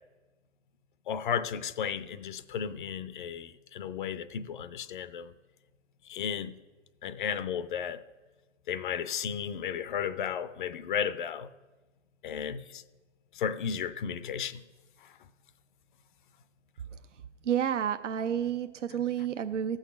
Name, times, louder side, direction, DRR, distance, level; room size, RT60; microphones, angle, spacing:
voice 1, 1.1-5.3 6.0-6.6 7.0-8.0 8.7-11.5 12.2-12.8 13.3-14.6 15.0-15.1, left 8 dB, 45° left, 0.6 m, -34 dB
voice 2, 16.9-19.8, right 9 dB, 75° right, 0.6 m, -31 dB
15.0 x 6.4 x 6.2 m
figure-of-eight pair, 120°, 36 cm